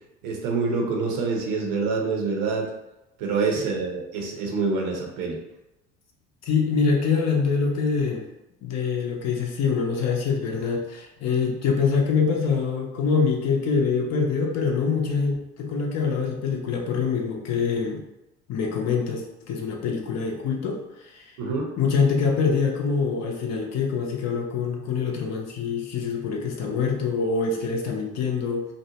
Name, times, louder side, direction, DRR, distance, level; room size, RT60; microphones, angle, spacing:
voice 1, 0.2-2.7 3.2-5.4 21.4-21.7, right 4 dB, 65° right, 0 dB, 0.8 m, -26 dB
voice 2, 6.4-8.2 8.6-18.0 18.5-20.8 21.1-21.2 21.8-28.7, left 5 dB, 50° left, 1 dB, 0.7 m, -25 dB
2.6 x 2.0 x 2.8 m, 0.93 s
hypercardioid pair, 65°, 36 cm